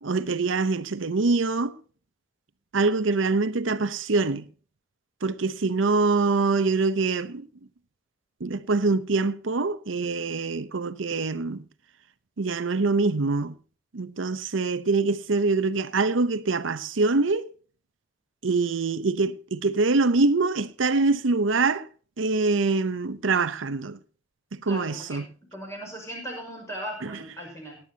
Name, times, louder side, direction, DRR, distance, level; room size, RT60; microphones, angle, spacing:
voice 1, 0.0-1.8 2.7-4.5 5.2-7.5 8.4-11.6 12.4-13.6 13.9-17.5 18.4-21.9 22.2-24.0 24.5-25.3 27.0-27.2, right 3 dB, 85° right, 0.8 m, -24 dB
voice 2, 24.6-27.8, equal, 15° left, 5.5 m, -38 dB
18.5 x 11.0 x 2.9 m
head